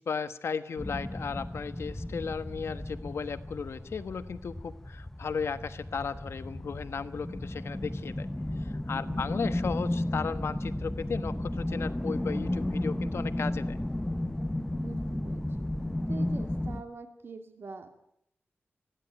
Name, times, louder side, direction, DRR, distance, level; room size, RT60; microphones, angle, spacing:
voice 1, 0.0-8.3 8.6-13.8, left 5 dB, 70° left, 10 dB, 1.2 m, -35 dB
sound 1, 0.8-16.8, left 1 dB, 10° left, 0.7 m, -33 dB
voice 2, 9.1-9.5 14.8-15.4 16.1-17.9, right 4 dB, 55° right, 5 dB, 2.4 m, -44 dB
20.5 x 15.0 x 9.2 m, 0.77 s
wide cardioid pair, 160°, 5 cm